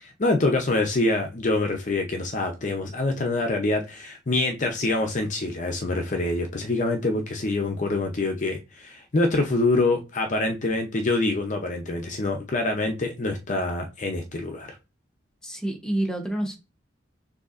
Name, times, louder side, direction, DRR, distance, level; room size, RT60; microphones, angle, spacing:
voice 1, 0.2-14.7, left 2 dB, 40° left, 4 dB, 0.6 m, -25 dB
voice 2, 15.4-16.6, right 1 dB, 5° left, 2 dB, 0.9 m, -28 dB
6.6 x 2.7 x 2.5 m, 0.27 s
head